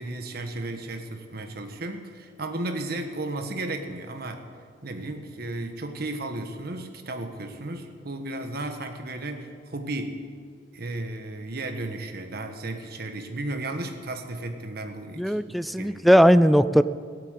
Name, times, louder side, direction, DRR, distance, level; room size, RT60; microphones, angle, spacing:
voice 1, 0.0-4.4 4.8-10.2 10.7-16.0, right 2 dB, 60° right, 5 dB, 1.4 m, -34 dB
voice 2, 15.2-16.8, equal, ahead, 14 dB, 0.3 m, -18 dB
16.5 x 8.5 x 8.2 m, 2.1 s
head